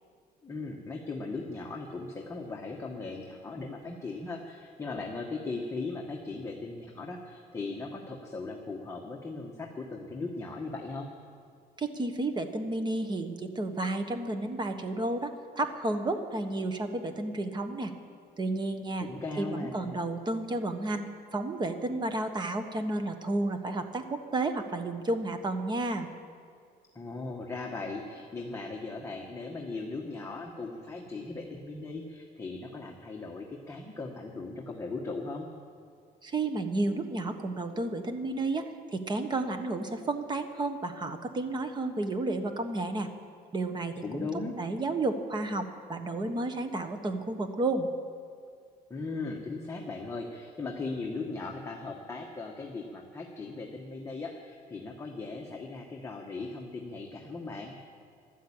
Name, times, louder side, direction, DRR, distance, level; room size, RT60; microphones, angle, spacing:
voice 1, 0.4-11.1 19.0-19.9 26.9-35.5 44.0-44.5 48.9-57.8, left 3 dB, 15° left, -1 dB, 1.4 m, -38 dB
voice 2, 11.8-17.9 18.4-19.1 19.4-26.1 36.2-38.7 38.9-43.1 43.5-44.3 44.6-47.9, right 2 dB, 25° right, 8 dB, 1.3 m, -32 dB
13.0 x 12.0 x 8.8 m, 2.2 s
cardioid pair, 130°, 17 cm